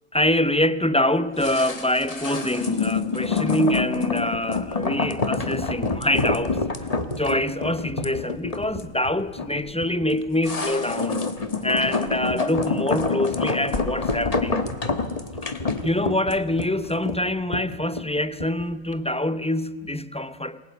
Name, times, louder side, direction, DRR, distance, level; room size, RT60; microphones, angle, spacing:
voice 1, 0.1-6.6 7.2-11.3 11.6-14.7 15.4-15.6 15.8-20.6, left 1 dB, 10° left, 0.4 m, -25 dB
sound 1, 1.4-18.6 18.9-19.0, left 3 dB, 30° left, 1.3 m, -27 dB
28.0 x 20.5 x 8.0 m
omnidirectional pair, 1.4 m